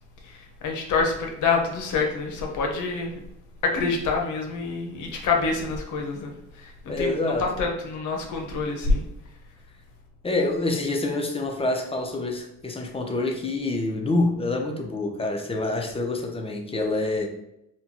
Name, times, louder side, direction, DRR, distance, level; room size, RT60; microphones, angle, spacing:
voice 1, 0.2-3.2 3.6-9.0, left 4 dB, 80° left, 1 dB, 0.8 m, -26 dB
voice 2, 6.9-7.5 10.2-17.3, left 2 dB, 20° left, 2 dB, 0.7 m, -26 dB
4.3 x 2.3 x 2.9 m, 0.83 s
cardioid pair, 90°, 30 cm